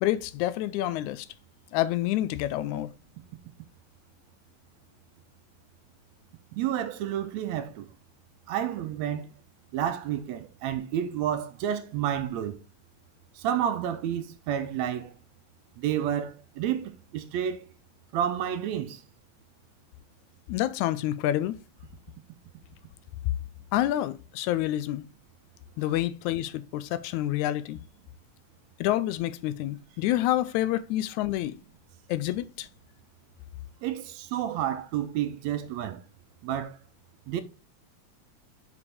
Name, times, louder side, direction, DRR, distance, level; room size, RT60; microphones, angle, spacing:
voice 1, 0.0-1.3 1.7-2.9 20.5-21.6 23.7-25.0 25.8-27.8 28.8-31.6 32.1-32.7, left 14 dB, 80° left, 1.9 m, -28 dB
voice 2, 6.6-7.9 8.5-9.3 9.7-12.6 13.4-15.1 15.8-17.7 18.1-19.0 33.8-36.0 36.4-36.8 37.3-37.4, right 10 dB, 80° right, 1.7 m, -30 dB
6.9 x 4.9 x 3.4 m
omnidirectional pair, 3.4 m